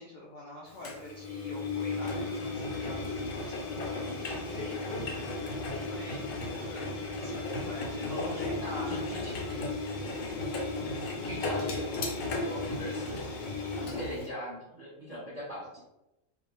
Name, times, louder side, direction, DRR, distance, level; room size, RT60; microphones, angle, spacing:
voice 1, 0.0-3.0 3.5-6.9 7.2-9.0, left 1 dB, 70° left, -6 dB, 0.4 m, -45 dB
Engine, 0.8-14.3, left 3 dB, 85° left, 1.0 m, -35 dB
voice 2, 8.1-9.4 10.2-10.3 11.2-13.5 13.8-15.8, equal, 35° right, -9 dB, 0.9 m, -41 dB
2.3 x 2.0 x 2.9 m, 0.94 s
omnidirectional pair, 1.4 m